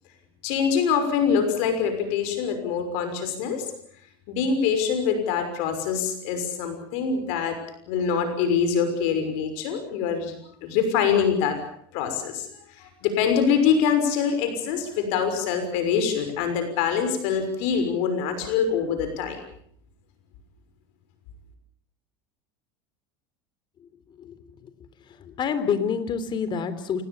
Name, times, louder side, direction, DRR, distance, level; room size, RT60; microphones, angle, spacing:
voice 1, 0.4-3.6 4.3-7.6 7.9-10.3 10.6-11.6 11.9-12.5 12.8-19.4, left 6 dB, 70° left, 8 dB, 6.0 m, -24 dB
voice 2, 25.2-27.0, left 6 dB, 40° left, 12 dB, 3.6 m, -27 dB
28.0 x 19.5 x 7.3 m, 0.64 s
supercardioid pair, 105°, 12 cm